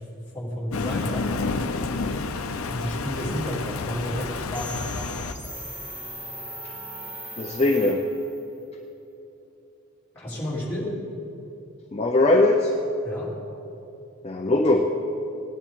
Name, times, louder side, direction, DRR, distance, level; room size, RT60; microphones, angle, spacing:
voice 1, 0.3-1.3 2.7-5.0 10.1-10.9 13.0-13.3, equal, 10° left, -8 dB, 3.1 m, -31 dB
Thunder, 0.7-5.3, left 3 dB, 80° left, 0.6 m, -29 dB
sound 1, 4.5-8.4, right 1 dB, 5° right, 0.9 m, -38 dB
voice 2, 7.4-8.0 11.9-12.7 14.2-14.9, left 2 dB, 30° left, 1 dB, 0.5 m, -20 dB
18.5 x 10.0 x 3.7 m, 2.8 s
head